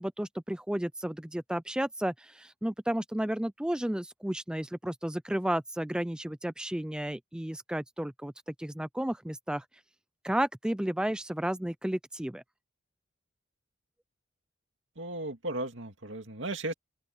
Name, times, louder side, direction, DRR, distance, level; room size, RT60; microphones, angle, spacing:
voice 1, 0.0-9.6 10.2-12.4, right 1 dB, 5° right, 0.3 m, -32 dB
voice 2, 15.0-16.7, right 2 dB, 65° right, 2.5 m, -35 dB
open air
head